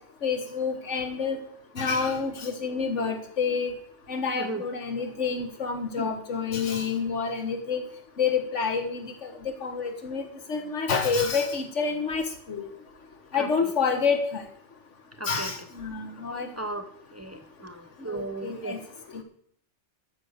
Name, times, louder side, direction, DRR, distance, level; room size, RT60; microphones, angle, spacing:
voice 1, 0.2-1.4 1.8-3.7 4.1-7.8 8.2-12.6 13.3-14.4 15.3-16.5 18.1-18.8, left 5 dB, 90° left, 5 dB, 1.8 m, -28 dB
voice 2, 4.3-4.7 6.0-6.1 13.3-13.7 15.2-15.5 16.6-18.9, right 2 dB, 15° right, 7 dB, 0.8 m, -36 dB
13.0 x 6.5 x 6.5 m, 0.65 s
omnidirectional pair, 1.2 m